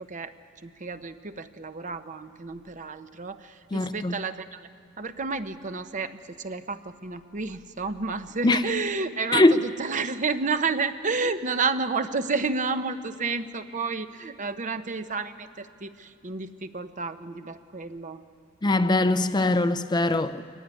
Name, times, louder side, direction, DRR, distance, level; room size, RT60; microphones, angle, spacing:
voice 1, 0.6-4.7 5.0-18.2, right 4 dB, 40° right, 0.8 m, -31 dB
voice 2, 3.7-4.2 8.4-8.7 9.3-9.6 18.6-20.4, left 2 dB, 20° left, 0.5 m, -22 dB
23.5 x 15.5 x 9.6 m
head